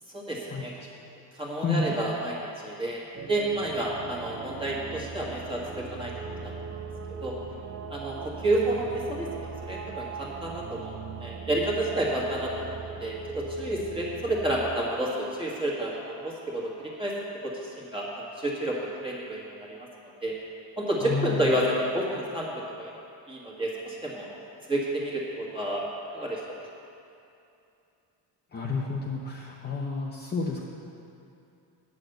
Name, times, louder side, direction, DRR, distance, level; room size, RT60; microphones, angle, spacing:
voice 1, 0.1-0.7 1.3-6.1 6.4-6.5 7.2-7.3 7.9-17.1 17.4-19.8 20.2-20.3 20.8-22.9 23.3-24.3 24.7-25.9 26.1-26.6, right 1 dB, 10° right, -4 dB, 1.6 m, -30 dB
sound 1, 3.1-14.8, right 5 dB, 30° right, 0.4 m, -39 dB
voice 2, 21.0-21.5 28.5-30.6, left 4 dB, 20° left, -3 dB, 0.7 m, -30 dB
9.4 x 6.3 x 7.8 m, 2.7 s
cardioid pair, 165°, 45 cm